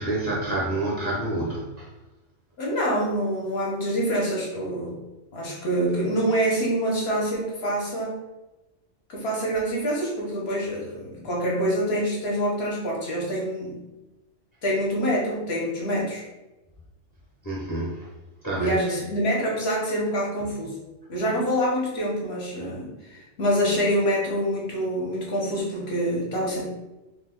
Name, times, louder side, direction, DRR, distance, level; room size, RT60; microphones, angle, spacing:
voice 1, 0.0-1.9 17.4-18.0 18.4-19.0, right 2 dB, 35° left, -5 dB, 0.3 m, -28 dB
voice 2, 2.6-5.0 5.3-8.2 9.1-13.8 14.6-16.2 18.5-20.8 21.1-26.7, equal, 60° left, -3 dB, 0.9 m, -26 dB
2.9 x 2.1 x 3.5 m, 1.0 s
omnidirectional pair, 1.3 m